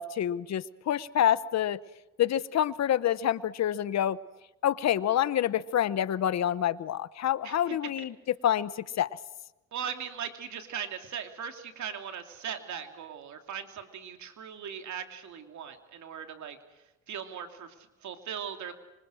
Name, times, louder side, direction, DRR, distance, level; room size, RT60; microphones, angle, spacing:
voice 1, 0.0-1.8 2.2-4.2 4.6-8.1 8.4-9.1, left 10 dB, 60° left, 1.1 m, -27 dB
voice 2, 7.4-7.8 9.7-16.6 17.1-18.7, right 8 dB, 70° right, 2.9 m, -39 dB
25.5 x 25.0 x 6.5 m
cardioid pair, 90°, 30 cm